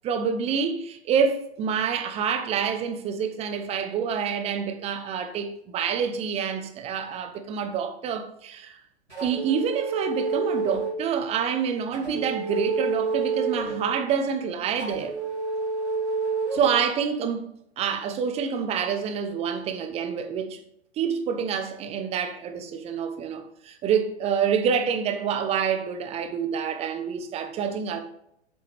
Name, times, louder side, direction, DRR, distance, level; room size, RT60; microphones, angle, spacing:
voice 1, 0.0-8.8 9.2-15.1 16.5-17.4 17.8-20.6 21.0-28.0, right 7 dB, 20° right, 0.8 m, -27 dB
sound 1, 9.1-11.0 11.9-13.9 14.8-16.7, right 4 dB, 90° right, 3.1 m, -29 dB
8.0 x 6.8 x 3.4 m
figure-of-eight pair, 110°, 33 cm